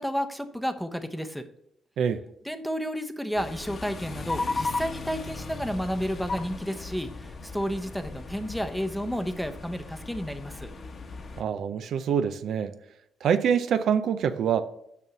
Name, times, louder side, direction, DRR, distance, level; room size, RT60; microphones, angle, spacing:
voice 1, 0.0-1.5 2.4-10.7, equal, ahead, 0.8 m, -31 dB
sound 1, 3.3-11.4, left 3 dB, 45° left, 1.1 m, -36 dB
voice 2, 11.4-12.7 13.2-14.6, right 8 dB, 70° right, 0.5 m, -25 dB
6.7 x 5.4 x 6.0 m
cardioid pair, 90°, 0 cm